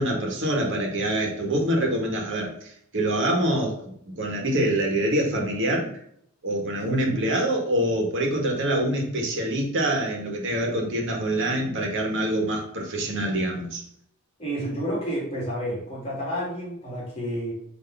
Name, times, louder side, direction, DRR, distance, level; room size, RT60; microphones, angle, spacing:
voice 1, 0.0-5.9 6.4-13.8, right 1 dB, 60° right, 0 dB, 1.8 m, -25 dB
voice 2, 6.8-7.3 14.4-17.5, equal, 25° left, -5 dB, 2.6 m, -30 dB
6.7 x 3.4 x 5.6 m, 0.69 s
head